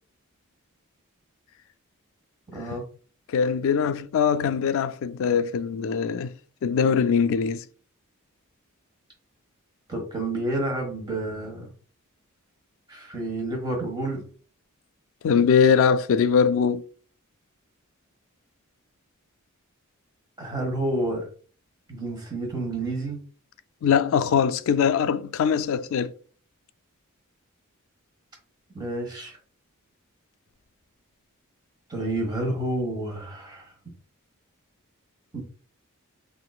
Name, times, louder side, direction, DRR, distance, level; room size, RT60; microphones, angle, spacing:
voice 1, 2.5-2.8 9.9-11.7 12.9-14.2 20.4-21.3 21.9-23.2 28.7-29.4 31.9-33.7 35.3-35.4, right 1 dB, 20° right, 1.2 m, -29 dB
voice 2, 3.3-6.3 6.6-7.6 15.2-16.8 23.8-26.1, left 6 dB, 65° left, 0.3 m, -22 dB
3.8 x 2.5 x 2.3 m
head